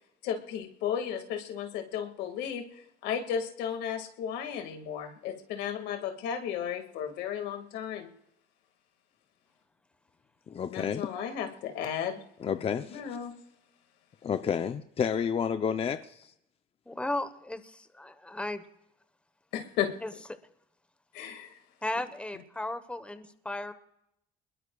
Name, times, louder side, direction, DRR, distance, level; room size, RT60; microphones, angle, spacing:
voice 1, 0.2-8.1 10.7-12.2 12.9-13.4 19.5-19.9 21.1-21.6, left 8 dB, 90° left, 2.0 m, -34 dB
voice 2, 10.5-11.1 12.4-13.0 14.2-16.3, left 7 dB, 35° left, 0.6 m, -30 dB
voice 3, 16.9-18.6 20.0-20.1 21.8-23.7, left 2 dB, 5° left, 1.1 m, -35 dB
28.0 x 21.0 x 2.4 m
cardioid pair, 110°, 17 cm